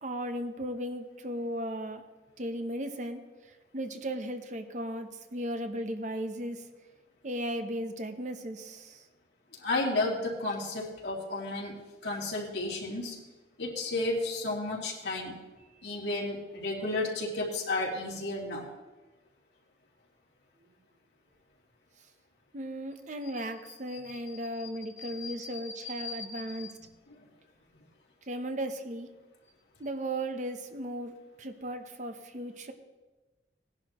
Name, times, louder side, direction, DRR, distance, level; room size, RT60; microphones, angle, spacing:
voice 1, 0.0-2.0 2.4-6.7 7.2-9.1 22.5-26.7 28.3-29.1 29.8-32.7, right 1 dB, 45° right, 7 dB, 0.8 m, -36 dB
voice 2, 9.6-13.2 13.6-15.4 15.8-18.7 23.9-24.0 25.0-26.7, left 2 dB, 80° left, -2 dB, 2.5 m, -33 dB
18.0 x 10.5 x 3.0 m, 1.2 s
head